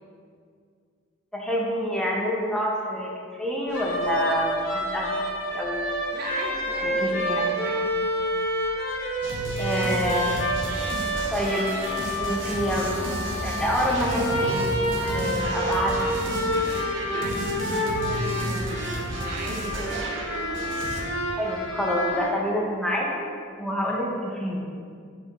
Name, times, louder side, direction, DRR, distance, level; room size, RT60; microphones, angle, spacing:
voice 1, 1.3-5.8 6.8-7.4 9.6-10.3 11.3-11.7 12.2-13.0 13.4-14.7 15.1-16.0 21.4-23.3 23.6-24.6, equal, 5° left, -3 dB, 0.9 m, -27 dB
sound 1, 3.7-22.3, equal, 75° left, 1.7 m, -29 dB
voice 2, 6.1-7.0 7.4-8.0 17.0-20.2, right 2 dB, 50° right, 0 dB, 0.6 m, -38 dB
sound 2, 9.2-21.0, right 1 dB, 65° right, 1.0 m, -32 dB
Telephone, 10.0-15.4, left 1 dB, 45° left, 1.5 m, -41 dB
5.2 x 4.4 x 5.5 m, 2.1 s
head